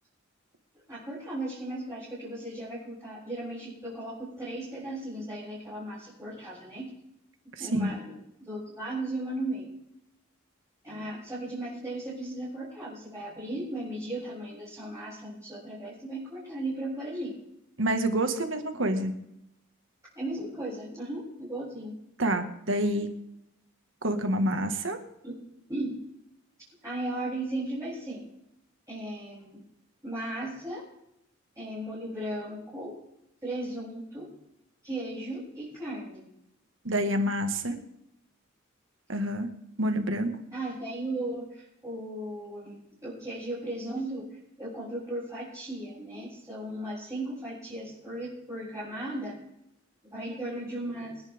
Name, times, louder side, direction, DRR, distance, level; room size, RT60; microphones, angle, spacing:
voice 1, 0.9-6.9 7.6-8.0 8.4-9.7 10.8-17.3 20.1-21.9 25.2-25.3 25.7-25.9 26.8-28.2 28.9-29.6 30.0-30.8 31.6-32.9 33.4-34.3 34.8-36.2 40.5-49.3 50.1-51.2, right 1 dB, 15° right, -11 dB, 7.8 m, -36 dB
voice 2, 7.6-8.0 17.8-19.1 22.2-23.1 24.0-25.0 36.8-37.8 39.1-39.5 39.8-40.3, right 1 dB, 65° right, 6 dB, 1.9 m, -27 dB
28.0 x 11.0 x 3.7 m, 0.81 s
head